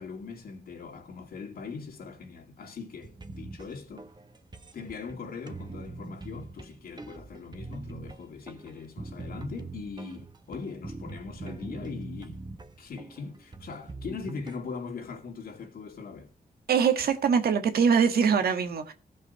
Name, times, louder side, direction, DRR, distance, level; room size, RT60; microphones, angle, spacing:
voice 1, 0.0-4.1 4.7-12.4 12.8-16.3, left 5 dB, 80° left, 2.8 m, -40 dB
sound 1, 3.0-14.6, right 3 dB, 30° right, 1.2 m, -43 dB
voice 2, 16.7-18.9, right 6 dB, 85° right, 1.5 m, -23 dB
15.5 x 5.6 x 5.4 m
cardioid pair, 95°, 15 cm